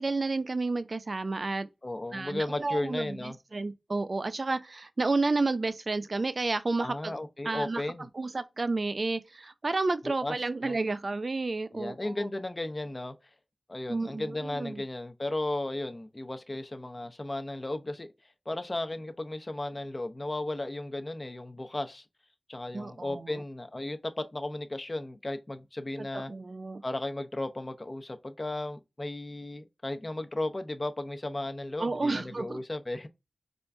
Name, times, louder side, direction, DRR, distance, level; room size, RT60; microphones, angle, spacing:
voice 1, 0.0-1.7 2.1-7.1 7.4-7.8 8.1-12.1 13.9-14.8 22.7-23.3 26.0-26.8 31.8-32.6, right 3 dB, 55° right, 0.4 m, -31 dB
voice 2, 1.8-3.4 6.8-8.1 10.0-10.4 10.6-10.8 11.7-13.1 13.7-18.1 18.5-22.0 22.5-26.3 26.8-33.1, left 2 dB, 35° left, 0.6 m, -35 dB
4.4 x 2.5 x 2.2 m
wide cardioid pair, 60°, 0 cm